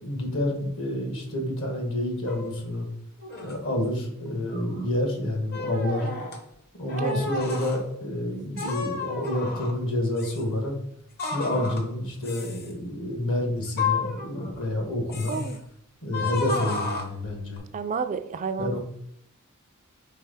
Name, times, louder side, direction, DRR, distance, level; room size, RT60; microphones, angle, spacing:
voice 1, 0.0-2.9 3.4-6.1 6.8-10.7 11.3-15.4 16.0-17.6 18.6-18.8, left 1 dB, 65° left, 2 dB, 1.7 m, -28 dB
sound 1, 2.3-2.6 3.2-3.6 4.3-4.9 5.5-6.4 6.9-7.8 8.6-9.8 10.2-10.4 11.2-11.9 12.2-12.7 13.7-14.7 15.1-15.6 16.1-17.6, left 4 dB, 45° left, 0.9 m, -32 dB
voice 2, 7.0-7.3 15.3-15.6 17.7-18.8, right 5 dB, 35° right, 9 dB, 0.3 m, -30 dB
4.7 x 3.6 x 5.6 m, 0.69 s
head